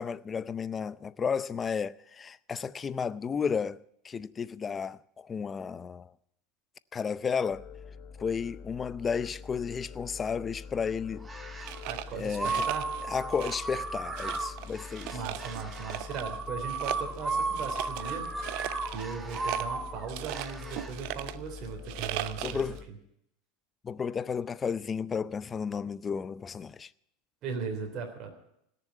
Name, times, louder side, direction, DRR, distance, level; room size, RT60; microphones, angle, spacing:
voice 1, 0.0-6.1 6.9-7.7 8.2-11.3 12.2-12.6 13.1-15.2 22.4-22.8 23.8-26.9, left 6 dB, 25° left, 0.5 m, -33 dB
sound 1, 7.5-22.8, left 5 dB, 50° left, 1.4 m, -45 dB
sound 2, 11.2-11.8 12.3-20.9, right 4 dB, 15° right, 1.5 m, -35 dB
sound 3, 11.6-13.0 13.3-13.8 14.2-16.4 16.7-22.8, right 15 dB, 65° right, 0.7 m, -39 dB
voice 2, 11.8-12.9 15.1-22.6 27.4-28.3, right 6 dB, 45° right, 3.4 m, -38 dB
17.5 x 6.9 x 9.4 m
supercardioid pair, 115°, 0 cm